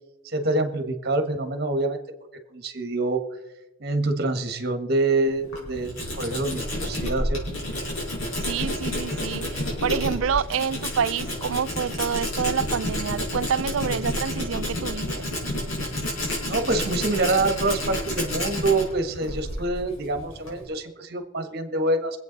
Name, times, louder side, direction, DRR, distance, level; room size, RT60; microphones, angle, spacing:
voice 1, 0.2-2.0 2.5-3.2 3.8-7.4 16.5-22.2, right 2 dB, 50° right, 1.4 m, -26 dB
Tools, 5.3-20.7, left 1 dB, 85° left, 5.1 m, -30 dB
voice 2, 8.4-9.5 9.8-15.2, right 7 dB, 70° right, 0.4 m, -27 dB
24.0 x 8.3 x 4.0 m
head